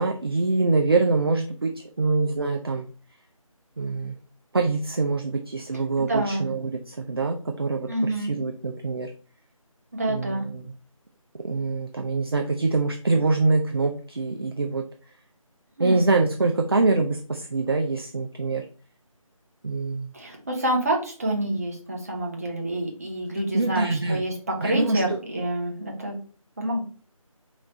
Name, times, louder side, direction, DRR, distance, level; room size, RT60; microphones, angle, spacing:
voice 1, 0.0-1.7 2.0-2.9 3.8-4.2 4.5-9.1 10.1-10.7 11.4-14.8 15.8-18.6 19.6-20.1 23.5-24.2 24.6-25.2, right 3 dB, 45° right, 3 dB, 0.4 m, -24 dB
voice 2, 6.1-6.5 7.9-8.3 9.9-10.5 15.8-16.1 20.1-26.2 26.6-26.8, right 1 dB, 25° right, 0 dB, 0.8 m, -27 dB
3.1 x 3.1 x 3.8 m, 0.40 s
figure-of-eight pair, 165°, 18 cm